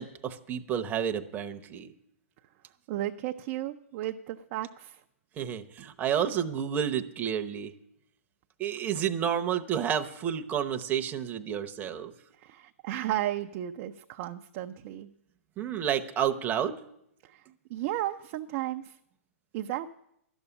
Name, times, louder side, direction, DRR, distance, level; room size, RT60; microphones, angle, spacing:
voice 1, 0.0-1.9 5.4-7.7 8.6-12.1 15.6-16.7, right 9 dB, 20° right, 7 dB, 0.9 m, -30 dB
voice 2, 2.9-5.0 12.4-15.1 17.2-17.4 17.7-19.0 19.5-19.9, right 13 dB, 40° right, 5 dB, 0.5 m, -34 dB
12.0 x 7.1 x 10.0 m, 0.78 s
hypercardioid pair, 130°, 8 cm